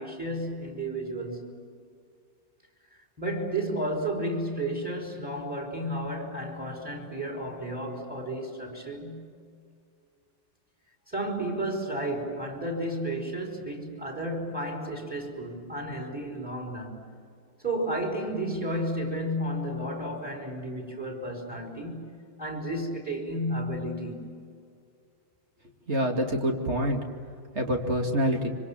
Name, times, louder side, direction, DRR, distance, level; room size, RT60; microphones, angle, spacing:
voice 1, 0.0-1.5 3.2-9.3 11.1-17.0 17.6-24.3, right 1 dB, 5° right, 2 dB, 5.0 m, -32 dB
voice 2, 25.9-27.0 27.5-28.5, equal, 30° right, 2 dB, 2.6 m, -26 dB
26.0 x 26.0 x 7.5 m, 2.3 s
omnidirectional pair, 2.3 m